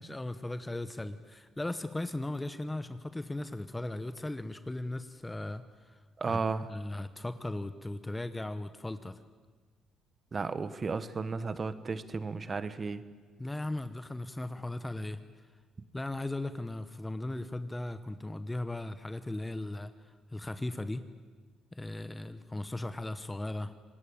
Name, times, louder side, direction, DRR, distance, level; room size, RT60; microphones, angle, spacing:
voice 1, 0.0-9.2 13.4-15.5 15.9-21.0 21.7-23.7, left 2 dB, 15° left, 11 dB, 1.1 m, -37 dB
voice 2, 6.2-6.7 10.3-13.0, right 4 dB, 35° right, 14 dB, 1.4 m, -34 dB
26.5 x 19.5 x 8.9 m, 1.5 s
cardioid pair, 85°, 0 cm